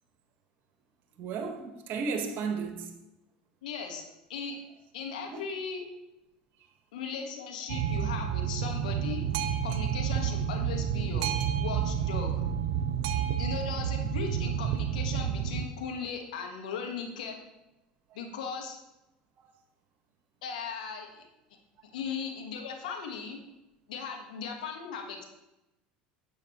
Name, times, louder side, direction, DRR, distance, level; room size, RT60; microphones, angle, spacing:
voice 1, 1.2-2.9 5.3-5.4 18.1-18.2 19.4-19.5, right 5 dB, 55° right, 1.4 m, -34 dB
voice 2, 3.6-4.0 4.3-4.6 4.9-5.9 6.9-9.3 9.6-12.4 13.4-17.4 18.1-18.8 20.4-21.3 21.9-23.4 23.9-25.2, left 6 dB, 80° left, 1.4 m, -38 dB
Boat Water vehicle, 7.7-15.7, right 8 dB, 70° right, 0.6 m, -30 dB
9.5 x 8.1 x 3.1 m
hypercardioid pair, 85°, 4 cm